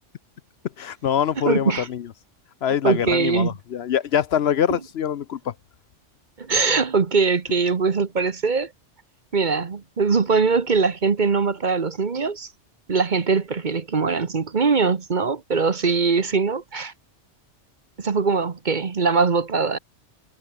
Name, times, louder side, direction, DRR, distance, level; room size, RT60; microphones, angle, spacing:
voice 1, 0.8-2.0 2.6-5.5, left 9 dB, 65° left, 0.9 m, -24 dB
voice 2, 1.5-1.9 2.8-3.5 6.4-8.7 9.3-12.5 12.9-16.9 18.0-19.8, right 4 dB, 45° right, 1.2 m, -22 dB
omnidirectional pair, 1.2 m